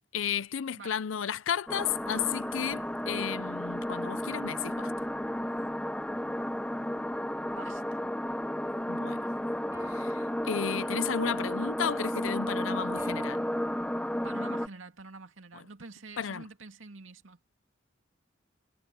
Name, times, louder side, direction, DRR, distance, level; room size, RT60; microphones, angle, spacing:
voice 1, 0.1-4.9 8.9-9.3 9.9-13.4 16.2-16.4, left 8 dB, 80° left, 0.5 m, -33 dB
sound 1, 1.7-14.7, left 1 dB, 5° left, 1.0 m, -33 dB
voice 2, 7.5-8.0 14.2-17.4, right 3 dB, 80° right, 2.4 m, -47 dB
sound 2, 9.7-11.3 13.0-14.4, right 1 dB, 15° right, 2.7 m, -47 dB
head